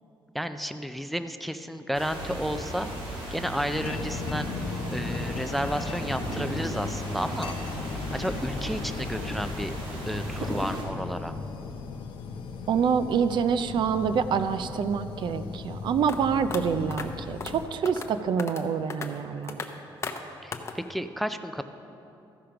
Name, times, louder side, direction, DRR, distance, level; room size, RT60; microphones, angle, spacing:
voice 1, 0.3-2.9 3.3-4.5 4.9-7.5 8.1-9.7 10.1-11.3 20.4-21.6, equal, ahead, 9 dB, 0.3 m, -32 dB
sound 1, 1.9-10.8, right 1 dB, 80° right, 2.3 m, -36 dB
sound 2, 3.7-17.7, left 4 dB, 90° left, 0.8 m, -37 dB
voice 2, 12.7-19.6, right 6 dB, 65° right, 11 dB, 0.4 m, -26 dB
sound 3, 16.1-16.2 16.5-16.6 16.9-17.1 17.4-17.6 17.9-18.1 18.4-18.6 18.9-19.1 19.5-19.7 20.0-20.2 20.5-20.7, left 5 dB, 35° left, 0.7 m, -34 dB
14.0 x 5.0 x 5.8 m, 2.8 s
cardioid pair, 130°, 9 cm